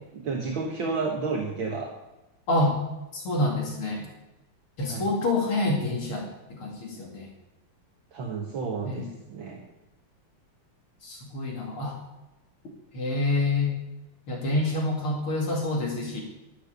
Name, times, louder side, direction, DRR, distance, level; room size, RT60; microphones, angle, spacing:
voice 1, 0.1-1.9 4.9-5.1 8.1-9.6, right 4 dB, 65° right, 1 dB, 2.2 m, -31 dB
voice 2, 2.5-2.8 3.1-4.1 4.8-7.3 8.9-9.1 11.0-12.0 12.9-13.7 14.3-16.2, left 2 dB, 75° left, 0 dB, 3.4 m, -27 dB
12.5 x 11.0 x 6.7 m, 0.97 s
omnidirectional pair, 2.4 m